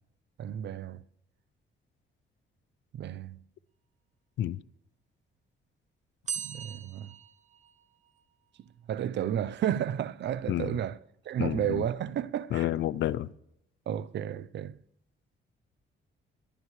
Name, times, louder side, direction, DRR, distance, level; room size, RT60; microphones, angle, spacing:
voice 1, 0.4-1.0 2.9-3.4 6.3-7.2 8.9-11.0 11.2-12.7 13.9-14.8, right 10 dB, 60° right, 0.6 m, -32 dB
sound 1, 6.3-8.2, right 7 dB, 35° right, 1.0 m, -39 dB
voice 2, 11.4-11.8 12.5-13.3, left 13 dB, 70° left, 0.5 m, -29 dB
25.5 x 12.0 x 3.2 m
cardioid pair, 90°, 20 cm